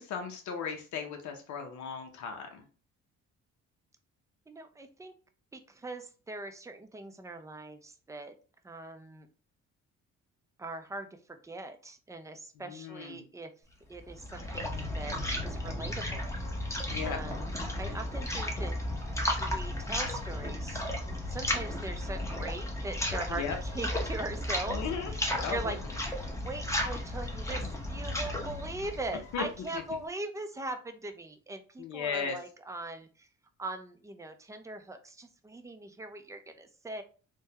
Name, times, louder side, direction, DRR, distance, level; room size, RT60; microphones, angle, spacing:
voice 1, 0.0-2.6 12.6-13.2 16.9-17.2 23.3-23.6 24.7-25.1 25.4-25.7 29.3-29.4 29.7-29.8 31.8-32.4, left 6 dB, 70° left, 4 dB, 0.7 m, -36 dB
voice 2, 4.5-5.1 5.5-8.3 8.6-9.3 10.6-13.5 13.9-15.2 15.4-16.3 17.0-18.8 19.4-20.8 21.3-25.2 25.5-25.8 26.4-33.3 33.6-37.0, right 2 dB, 10° right, 7 dB, 0.4 m, -41 dB
sound 1, 13.9-29.9, left 1 dB, 10° left, 0.8 m, -34 dB
3.4 x 2.1 x 2.8 m, 0.37 s
cardioid pair, 90°, 30 cm